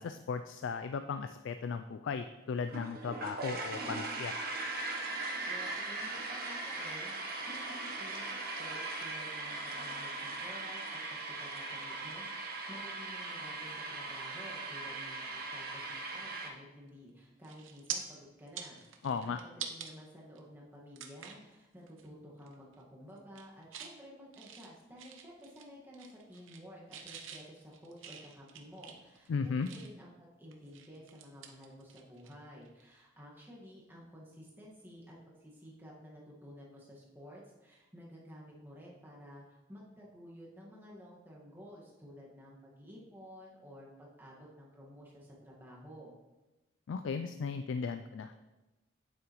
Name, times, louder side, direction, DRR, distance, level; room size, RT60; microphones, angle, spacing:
voice 1, 0.0-4.3 19.0-19.4 29.3-29.7 46.9-48.3, left 5 dB, 75° left, 9 dB, 0.3 m, -36 dB
sound 1, 2.7-16.5, right 2 dB, 50° right, 0.9 m, -39 dB
voice 2, 5.5-7.1 7.5-18.8 19.2-46.1, equal, 10° right, -4 dB, 1.6 m, -52 dB
sound 2, 16.9-17.1 17.4-18.0 18.4-19.9 20.4-20.5 21.0-21.5 21.9-22.1 22.4-22.8 23.2-23.9 24.3-25.7 25.9-26.6 26.9-30.1 30.5-32.3 32.6-32.8 34.7-34.9, right 8 dB, 85° right, 0.8 m, -45 dB
8.8 x 7.5 x 3.0 m, 1.1 s
head